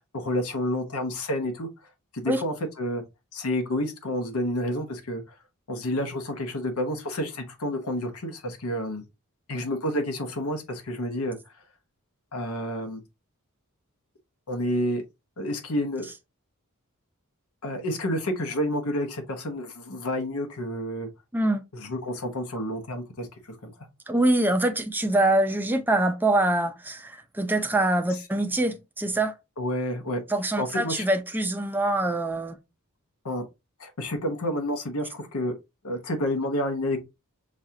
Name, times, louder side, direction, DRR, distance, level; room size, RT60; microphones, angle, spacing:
voice 1, 0.1-1.7 2.1-3.0 3.3-5.2 5.7-9.0 9.5-11.4 12.3-13.0 14.5-15.0 15.4-16.1 17.6-21.1 21.7-23.7 29.6-30.2 30.6-31.1 33.2-33.4 33.8-35.6 35.8-37.0, left 1 dB, 80° left, 1.0 m, -29 dB
voice 2, 21.3-21.6 24.1-29.4 30.3-32.6, right 1 dB, 10° right, 0.5 m, -24 dB
6.2 x 2.5 x 2.8 m
head